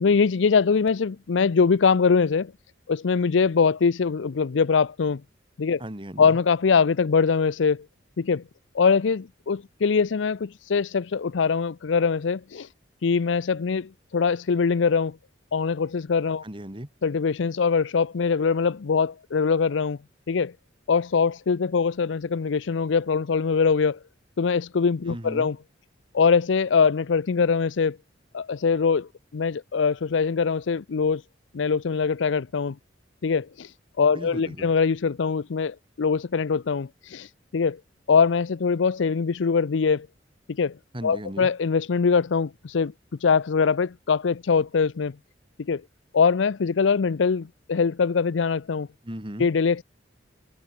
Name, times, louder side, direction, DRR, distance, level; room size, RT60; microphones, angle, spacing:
voice 1, 0.0-2.5 2.9-5.2 5.6-5.8 6.2-7.9 8.2-8.4 8.7-12.7 13.0-15.2 15.5-16.4 17.0-20.0 20.3-20.5 20.9-24.0 24.4-25.6 26.1-28.0 28.3-31.2 31.5-32.8 33.2-37.8 38.1-40.1 40.5-40.8 41.0-42.9 43.2-45.1 45.6-45.8 46.1-48.9 49.4-49.8, left 5 dB, 75° left, 0.5 m, -23 dB
voice 2, 5.8-6.4 16.4-16.9 25.1-25.5 34.1-34.7 40.9-41.5 49.0-49.5, right 1 dB, 30° right, 2.7 m, -36 dB
head